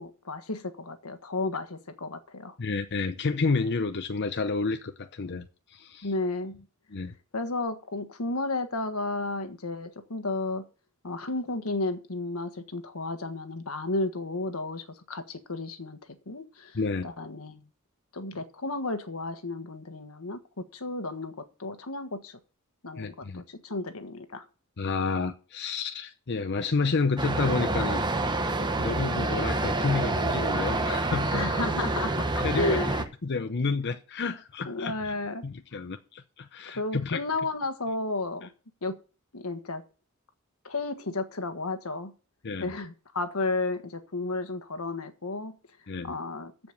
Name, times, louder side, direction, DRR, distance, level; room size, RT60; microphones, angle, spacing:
voice 1, 0.0-2.5 6.0-6.5 7.3-10.6 11.0-16.0 16.3-17.6 18.1-20.4 20.7-22.4 22.8-24.4 31.3-33.0 34.6-35.4 36.7-38.5 38.8-39.0 39.3-39.8 40.6-42.1 42.6-45.5 46.0-46.5, left 2 dB, 85° left, 1.5 m, -33 dB
voice 2, 2.6-6.1 6.9-7.1 16.7-17.1 23.0-23.4 24.8-28.0 28.8-31.5 32.4-32.8 33.2-35.1 35.4-37.2 42.4-42.7 45.9-46.2, left 4 dB, 50° left, 0.7 m, -30 dB
sound 1, 27.2-33.0, right 2 dB, 20° right, 0.9 m, -27 dB
14.5 x 5.2 x 6.5 m
head